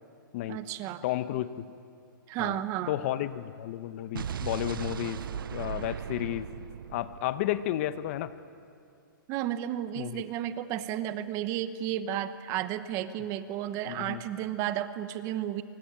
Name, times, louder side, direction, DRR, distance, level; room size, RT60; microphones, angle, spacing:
voice 1, 0.5-1.0 2.3-2.9 9.3-15.6, right 12 dB, 25° right, 12 dB, 1.1 m, -33 dB
voice 2, 1.0-1.7 2.4-2.6 2.9-5.2 5.5-6.5 6.9-8.3 10.0-10.2 13.9-14.2, left 13 dB, 40° left, 13 dB, 0.9 m, -32 dB
Explosion, 4.1-8.2, right 8 dB, 75° right, 0.5 m, -38 dB
25.0 x 23.5 x 9.0 m, 2.5 s
hypercardioid pair, 150°, 11 cm